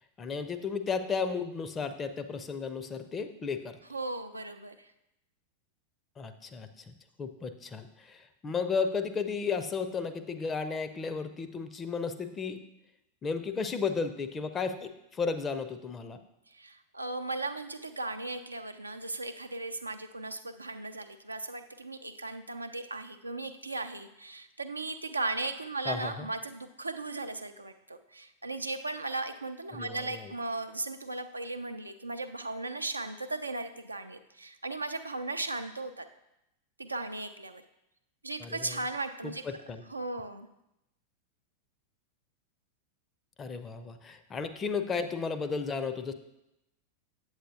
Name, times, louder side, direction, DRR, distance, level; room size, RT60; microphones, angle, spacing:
voice 1, 0.2-3.8 6.2-6.9 7.2-12.6 13.2-16.2 25.8-26.3 29.7-30.3 38.4-38.8 39.2-39.8 43.4-46.1, left 5 dB, 20° left, 9 dB, 0.5 m, -34 dB
voice 2, 3.9-4.9 16.5-36.1 36.8-37.6 38.2-39.5 39.9-40.5, right 2 dB, 80° right, 8 dB, 0.4 m, -37 dB
7.9 x 7.9 x 2.7 m, 0.86 s
figure-of-eight pair, 90°, 0 cm